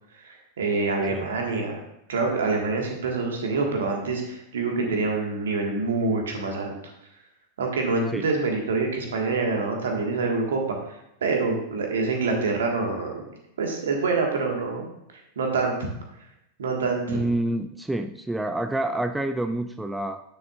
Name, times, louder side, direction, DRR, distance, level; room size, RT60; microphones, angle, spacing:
voice 1, 0.2-1.8 2.1-6.7 7.6-10.8 11.2-13.2 13.6-14.9 15.4-15.7 16.6-17.2, right 3 dB, 65° right, 1 dB, 1.6 m, -26 dB
voice 2, 17.1-20.2, right 1 dB, 5° right, 8 dB, 0.3 m, -28 dB
9.6 x 6.8 x 2.5 m, 0.83 s
figure-of-eight pair, 90°, 0 cm